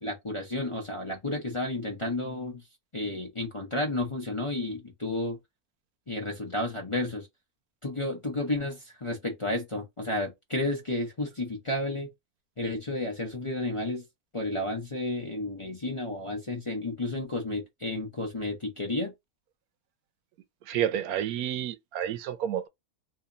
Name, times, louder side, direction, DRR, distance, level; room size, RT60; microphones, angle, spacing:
voice 1, 0.0-2.6 2.9-5.4 6.1-7.3 7.8-12.1 12.6-14.0 14.3-19.1, left 2 dB, 30° left, 0.7 m, -32 dB
voice 2, 20.6-22.7, right 10 dB, 80° right, 1.0 m, -30 dB
2.8 x 2.7 x 3.8 m
omnidirectional pair, 1.5 m